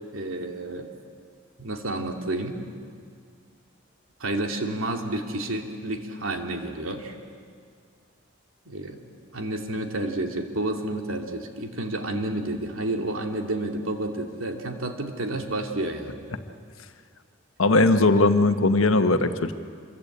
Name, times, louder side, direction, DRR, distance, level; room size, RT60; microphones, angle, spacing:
voice 1, 0.1-0.9 1.6-2.6 4.2-7.1 8.7-9.0 9.3-16.3, right 2 dB, 85° right, 4 dB, 2.6 m, -30 dB
voice 2, 17.6-19.5, left 2 dB, 85° left, 8 dB, 1.4 m, -19 dB
26.5 x 22.5 x 8.6 m, 2.2 s
head